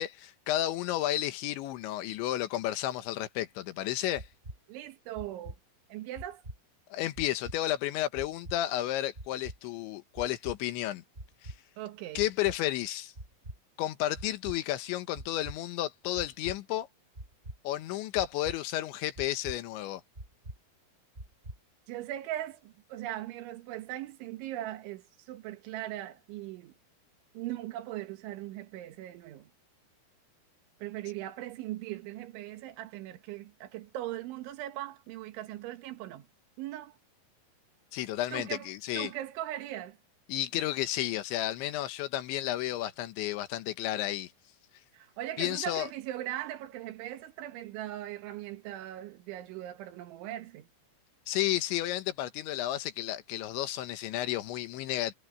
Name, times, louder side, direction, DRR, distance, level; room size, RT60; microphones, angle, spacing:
voice 1, 0.0-4.3 6.9-11.0 11.4-11.5 12.2-13.1 13.8-16.9 17.7-20.0 37.9-39.1 40.3-44.3 45.4-45.9 51.3-55.2, left 14 dB, 80° left, 3.5 m, -32 dB
sound 1, 4.2-4.6 5.2-5.6 6.2-6.6 7.2-7.6 8.2-8.6 9.2-9.6 10.2-10.6 11.2-11.6 12.2-12.6 13.2-13.6 14.2-14.6 15.2-15.6 16.2-16.6 17.2-17.6 18.2-18.6 19.2-19.6 20.2-20.6 21.2-21.6, right 1 dB, 15° right, 4.3 m, -43 dB
voice 2, 4.7-5.6 5.9-6.4 11.8-12.3 21.9-26.7 27.4-29.5 30.8-36.3 36.6-37.0 38.3-40.0 44.9-50.7, right 14 dB, 90° right, 3.9 m, -39 dB
omnidirectional pair, 5.3 m